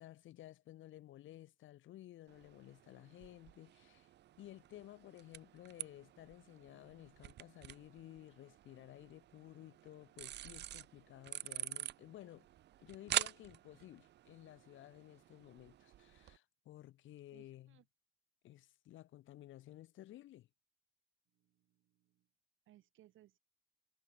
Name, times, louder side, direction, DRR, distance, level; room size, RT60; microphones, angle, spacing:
voice 1, 0.0-4.1 4.4-12.5 12.8-17.8 18.4-20.5, left 14 dB, 75° left, 1.0 m, -55 dB
sound 1, 2.3-16.4, right 13 dB, 60° right, 0.5 m, -46 dB
voice 2, 17.3-17.9 21.3-22.3 22.7-23.4, right 14 dB, 80° right, 2.0 m, -67 dB
cardioid pair, 90°, 20 cm